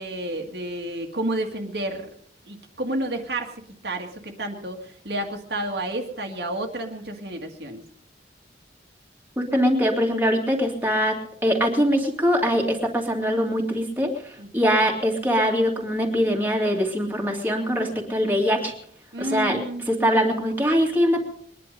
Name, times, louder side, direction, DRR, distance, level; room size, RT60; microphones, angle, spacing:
voice 1, 0.0-2.1 2.5-3.5 3.8-7.8 14.4-14.7 19.1-19.9, right 1 dB, 65° right, 3 dB, 1.9 m, -30 dB
voice 2, 9.4-11.2 11.4-18.7 19.2-19.6 19.9-21.2, equal, 10° right, 0 dB, 2.4 m, -22 dB
21.5 x 11.0 x 5.2 m, 0.63 s
head